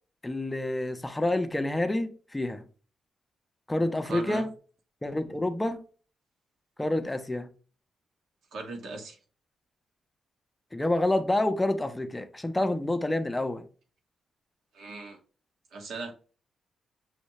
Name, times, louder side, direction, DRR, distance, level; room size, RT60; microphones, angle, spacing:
voice 1, 0.2-2.6 3.7-4.5 5.0-5.8 6.8-7.5 10.7-13.6, left 1 dB, 15° left, 0.5 m, -28 dB
voice 2, 4.1-4.4 8.5-9.2 14.7-15.2 15.7-16.1, right 3 dB, 75° right, 1.3 m, -38 dB
6.3 x 2.6 x 3.0 m
cardioid pair, 90°, 0 cm